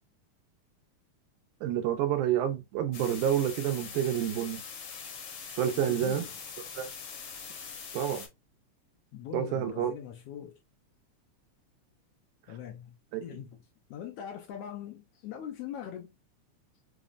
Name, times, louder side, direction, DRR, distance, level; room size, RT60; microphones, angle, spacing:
voice 1, 1.6-4.6 5.6-6.3 6.8-6.9 7.9-8.3 9.3-9.9 13.1-13.2, right 10 dB, 85° right, 2.2 m, -28 dB
sound 1, 2.9-8.3, left 6 dB, 65° left, 1.5 m, -43 dB
voice 2, 5.7-6.4 9.1-10.6 12.5-13.6 13.9-16.2, left 9 dB, 80° left, 1.4 m, -42 dB
5.6 x 2.1 x 2.4 m
omnidirectional pair, 3.5 m